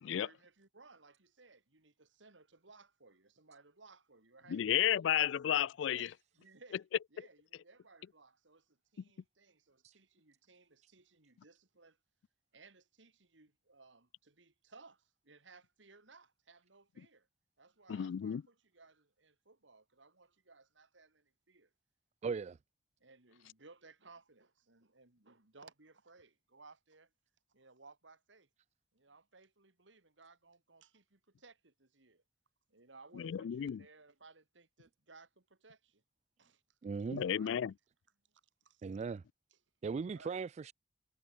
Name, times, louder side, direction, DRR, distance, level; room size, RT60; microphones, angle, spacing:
voice 1, 0.1-4.6 5.2-5.3 6.0-6.8 7.1-12.0 12.5-17.3 17.6-21.7 23.0-27.1 27.5-28.5 28.9-32.2 32.7-36.0 36.4-36.6 37.0-37.6 38.3-38.9 39.5-39.6 39.8-40.3, right 3 dB, 85° right, 2.9 m, -61 dB
voice 2, 4.5-6.1 17.9-18.4 33.2-33.8 37.1-37.7, left 10 dB, 80° left, 0.3 m, -32 dB
voice 3, 22.2-22.6 36.8-37.2 38.8-39.2 39.8-40.7, right 5 dB, 35° right, 0.3 m, -38 dB
head